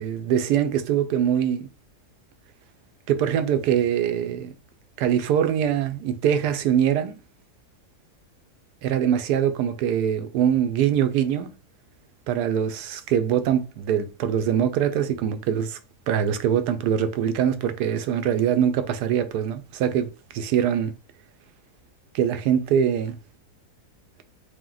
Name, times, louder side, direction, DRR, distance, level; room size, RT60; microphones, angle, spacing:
voice 1, 0.0-1.7 3.1-4.5 5.0-7.2 8.8-11.5 12.3-15.8 16.1-20.9 22.1-23.2, right 9 dB, 90° right, 1.1 m, -23 dB
3.5 x 2.8 x 3.8 m
omnidirectional pair, 1.7 m